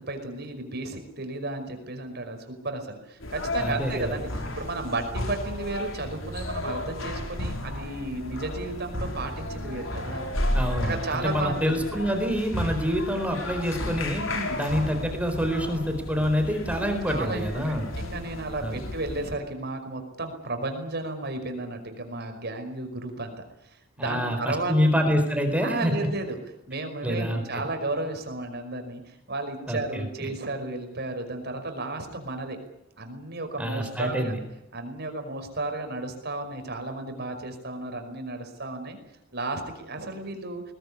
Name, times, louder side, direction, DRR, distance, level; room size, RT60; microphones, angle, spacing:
voice 1, 0.0-10.2 10.8-12.0 14.3-14.6 17.1-23.3 23.6-24.7 25.6-26.4 26.7-32.6 33.0-34.3 34.7-39.0 39.3-40.6, right 2 dB, 55° right, 6 dB, 5.4 m, -33 dB
sound 1, 3.2-19.3, left 1 dB, 70° left, 4.6 m, -33 dB
voice 2, 3.6-4.1 10.5-14.3 14.6-17.9 18.6-18.8 24.0-25.9 27.0-27.6 29.7-30.3 33.6-34.4, equal, 5° right, 5 dB, 4.3 m, -27 dB
21.0 x 20.5 x 9.8 m, 0.83 s
head